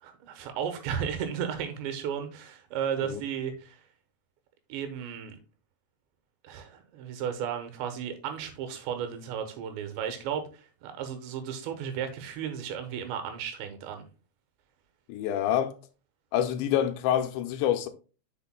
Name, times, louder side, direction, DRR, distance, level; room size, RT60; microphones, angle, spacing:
voice 1, 0.0-3.8 4.7-5.4 6.4-14.0, right 8 dB, 80° right, 3.3 m, -34 dB
voice 2, 15.1-15.8 16.3-17.9, left 10 dB, 90° left, 2.9 m, -27 dB
8.3 x 6.8 x 2.2 m
omnidirectional pair, 5.2 m